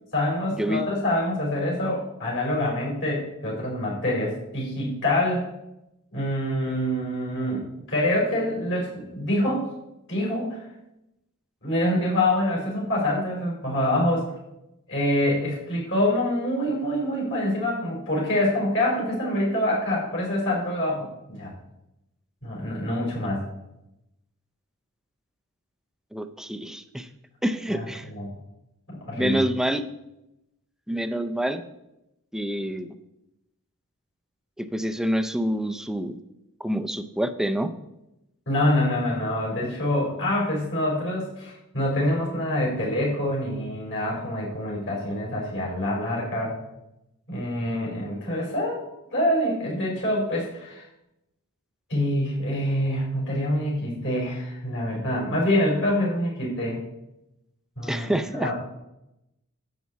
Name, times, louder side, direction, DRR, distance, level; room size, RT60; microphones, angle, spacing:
voice 1, 0.1-5.5 6.1-9.7 10.1-10.6 11.6-14.3 14.9-21.5 22.4-23.4 27.7-28.3 28.9-29.4 38.5-46.5 47.3-48.8 49.1-50.8 51.9-56.8 57.8-58.5, left 1 dB, 55° left, -3 dB, 4.6 m, -26 dB
voice 2, 26.1-27.1 27.4-28.0 29.2-29.8 30.9-31.6 32.3-32.9 34.6-36.2 36.6-37.7 57.8-58.5, equal, ahead, 9 dB, 0.5 m, -27 dB
10.5 x 8.4 x 4.1 m, 0.88 s
head